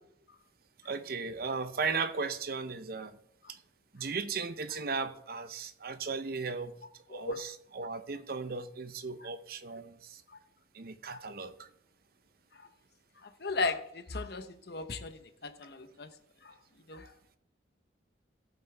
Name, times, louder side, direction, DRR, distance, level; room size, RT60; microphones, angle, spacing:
voice 1, 0.8-3.2 3.5-3.6 3.9-6.7 7.1-10.2 10.7-11.7, right 4 dB, 50° right, 0.7 m, -36 dB
voice 2, 13.2-16.1 16.4-16.5 16.9-17.1, left 3 dB, 55° left, 0.9 m, -36 dB
14.5 x 8.3 x 3.4 m
head